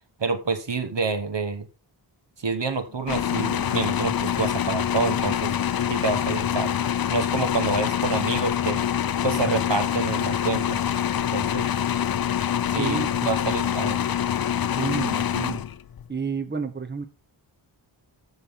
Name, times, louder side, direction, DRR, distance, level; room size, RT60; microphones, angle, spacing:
voice 1, 0.2-1.7 2.4-5.6 5.9-6.8 7.1-8.8 9.2-10.8 11.3-11.7 12.7-14.0, right 4 dB, 60° right, 10 dB, 1.3 m, -27 dB
sound 1, 3.1-16.1, left 9 dB, 50° left, 0.5 m, -25 dB
voice 2, 12.7-13.6 14.7-15.6 16.1-17.1, right 5 dB, 20° right, 10 dB, 0.9 m, -31 dB
13.0 x 6.0 x 3.7 m, 0.31 s
wide cardioid pair, 60°, 48 cm